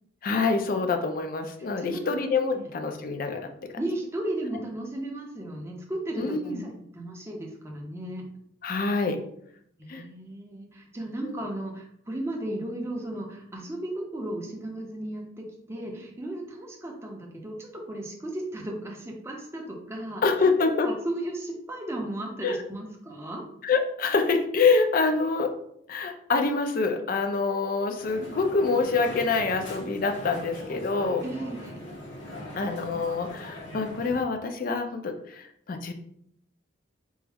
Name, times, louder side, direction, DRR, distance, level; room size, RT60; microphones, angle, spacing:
voice 1, 0.2-3.7 6.2-6.6 8.6-9.2 9.9-10.0 11.2-11.4 20.2-20.9 22.4-22.6 23.6-25.5 25.9-31.2 32.6-35.9, left 4 dB, 45° left, 6 dB, 0.4 m, -26 dB
voice 2, 1.8-2.1 2.5-2.7 3.8-8.2 9.8-23.4 31.2-31.8, right 1 dB, 15° right, -1 dB, 0.5 m, -35 dB
Crowd, 28.0-34.2, left 1 dB, 65° left, 0.9 m, -41 dB
3.3 x 2.0 x 3.3 m, 0.70 s
head